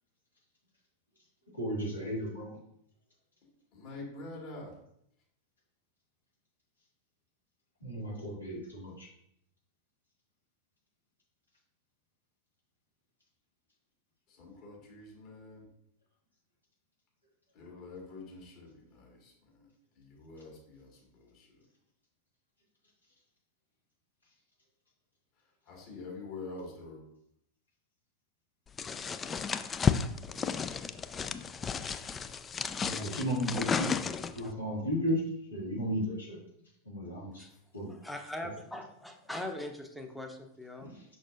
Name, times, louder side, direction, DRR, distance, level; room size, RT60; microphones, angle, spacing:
voice 1, 1.5-2.5 7.8-9.1 32.8-33.9 34.3-35.2 35.5-36.4 36.8-37.4 37.7-37.9 40.8-41.1, equal, 80° left, -6 dB, 2.5 m, -34 dB
voice 2, 3.7-4.7 14.3-15.7 17.5-21.7 25.7-27.0 37.5-37.6, left 3 dB, 40° left, -2 dB, 2.2 m, -46 dB
sound 1, 28.8-34.5, left 6 dB, 20° left, 0.3 m, -33 dB
voice 3, 37.9-40.9, left 1 dB, 5° left, 4 dB, 0.8 m, -41 dB
6.2 x 5.8 x 2.6 m, 0.74 s
figure-of-eight pair, 90°, 0 cm